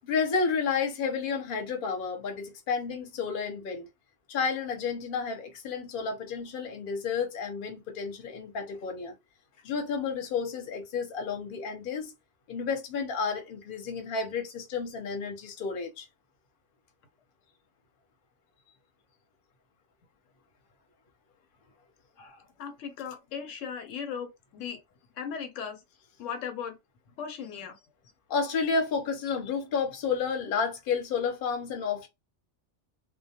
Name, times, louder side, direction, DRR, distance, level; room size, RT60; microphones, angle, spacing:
voice 1, 0.0-3.9 4.3-9.2 9.6-12.1 12.5-16.1 28.3-32.1, left 5 dB, 50° left, 0.8 m, -31 dB
voice 2, 22.2-24.8 25.2-25.8 26.2-26.8 27.2-27.8, left 7 dB, 80° left, 0.9 m, -38 dB
2.2 x 2.1 x 2.7 m
omnidirectional pair, 1.3 m